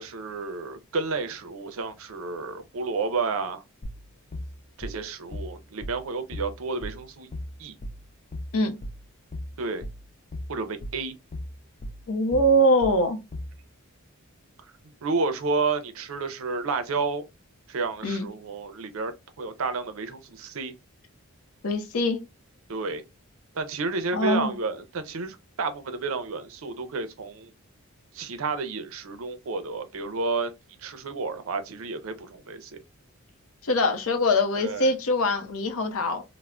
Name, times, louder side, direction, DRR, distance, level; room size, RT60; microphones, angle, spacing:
voice 1, 0.0-3.6 4.8-7.3 7.6-7.8 9.6-9.8 10.5-11.2 15.0-17.3 17.7-19.1 19.4-20.7 22.7-23.0 23.6-27.5 28.1-30.5 30.8-32.7 34.6-34.9, right 4 dB, 65° right, 0.5 m, -31 dB
sound 1, 3.8-13.6, left 1 dB, 30° left, 0.3 m, -37 dB
voice 2, 12.1-13.2 18.0-18.3 21.6-22.2 24.1-24.5 33.6-36.2, left 1 dB, 70° left, 0.6 m, -23 dB
3.3 x 2.0 x 2.3 m
head